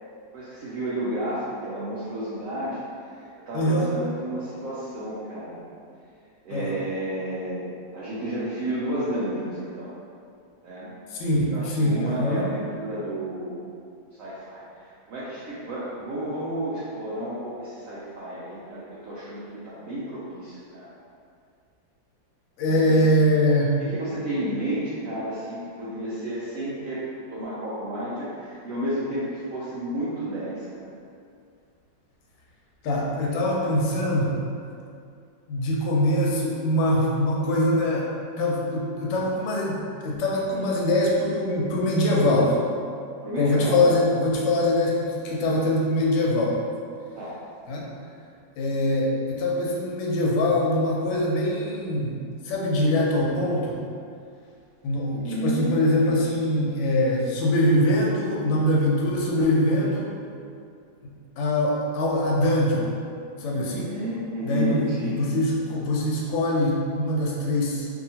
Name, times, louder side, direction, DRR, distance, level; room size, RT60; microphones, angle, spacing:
voice 1, 0.3-2.8 3.1-5.6 6.4-9.9 10.6-10.9 11.5-13.6 14.2-20.9 22.6-23.0 23.9-30.9 43.2-43.8 47.1-47.4 55.1-55.8 63.5-65.2, right 1 dB, 80° right, -10 dB, 0.7 m, -31 dB
voice 2, 3.5-3.9 6.5-6.8 11.1-12.5 22.6-23.8 32.8-34.4 35.5-38.1 38.4-42.6 43.4-46.6 47.7-47.9 48.6-53.8 54.8-60.1 61.0-62.9 63.4-63.9 64.4-67.9, left 1 dB, 90° left, -2 dB, 1.3 m, -23 dB
2.7 x 2.7 x 2.7 m, 2.4 s
omnidirectional pair, 2.0 m